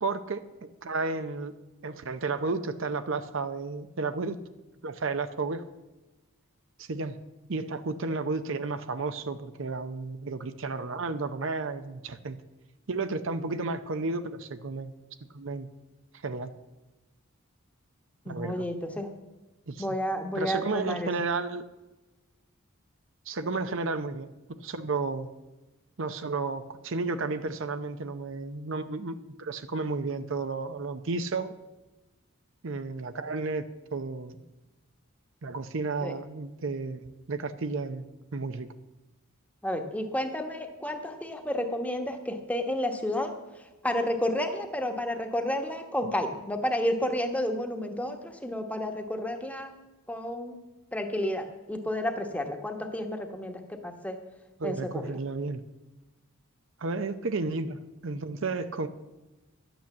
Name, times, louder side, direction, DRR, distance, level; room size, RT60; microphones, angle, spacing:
voice 1, 0.0-1.5 1.8-4.4 4.8-5.6 6.8-7.2 7.5-12.4 12.9-14.9 15.3-15.7 16.2-16.5 18.3-18.7 19.7-19.9 20.3-21.6 23.3-25.3 26.0-31.5 32.6-33.6 33.9-34.4 35.4-38.7 54.6-55.6 56.8-58.9, right 3 dB, 60° right, 10 dB, 0.7 m, -32 dB
voice 2, 18.2-19.1 19.8-21.1 36.0-36.1 39.6-43.3 43.8-49.7 50.1-50.6 50.9-54.2 54.6-55.1, left 1 dB, 5° left, 5 dB, 1.2 m, -31 dB
12.0 x 9.1 x 7.2 m, 1.1 s
head